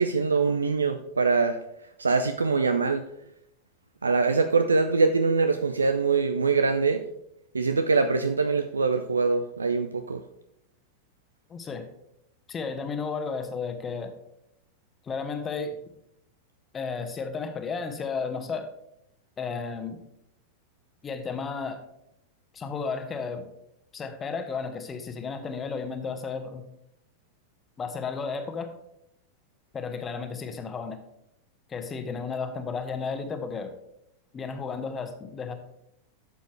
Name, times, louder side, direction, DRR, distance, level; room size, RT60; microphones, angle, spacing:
voice 1, 0.0-1.6 2.0-3.0 4.0-7.0 7.5-10.2, right 4 dB, 75° right, 9 dB, 0.5 m, -23 dB
voice 2, 11.5-11.9 12.5-14.1 15.0-15.8 16.7-18.7 19.4-20.0 21.0-21.8 22.5-23.5 23.9-26.6 27.8-28.7 29.7-31.0 31.7-33.7 34.3-35.6, left 5 dB, 20° left, 7 dB, 1.1 m, -33 dB
11.5 x 7.0 x 3.2 m, 0.79 s
figure-of-eight pair, 90°, 0 cm